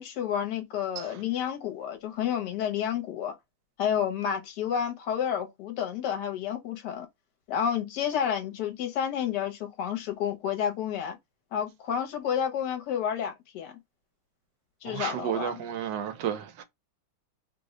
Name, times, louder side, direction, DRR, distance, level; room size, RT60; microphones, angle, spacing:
voice 1, 0.0-3.3 3.8-7.1 7.5-11.2 11.5-13.7 14.8-15.6, left 8 dB, 70° left, 1.4 m, -30 dB
voice 2, 14.8-16.6, right 9 dB, 85° right, 1.4 m, -32 dB
3.3 x 2.1 x 3.6 m
omnidirectional pair, 1.9 m